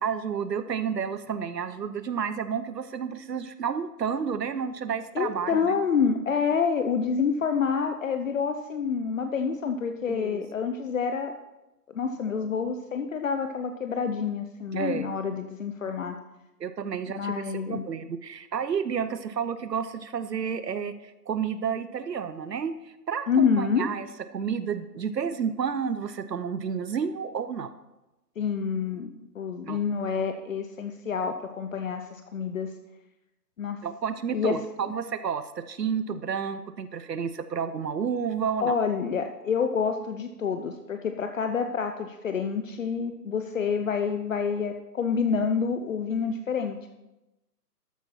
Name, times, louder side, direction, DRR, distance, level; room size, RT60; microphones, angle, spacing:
voice 1, 0.0-5.8 10.1-10.4 14.7-15.1 16.6-27.7 29.7-29.8 33.8-38.8, right 7 dB, 75° right, 12 dB, 0.8 m, -31 dB
voice 2, 5.1-11.3 11.9-16.2 17.2-17.8 23.3-23.9 28.4-29.1 29.3-32.7 33.6-33.8 34.3-34.6 38.6-46.9, left 6 dB, 50° left, 6 dB, 0.8 m, -28 dB
13.0 x 8.4 x 4.3 m, 1.0 s
figure-of-eight pair, 145°, 49 cm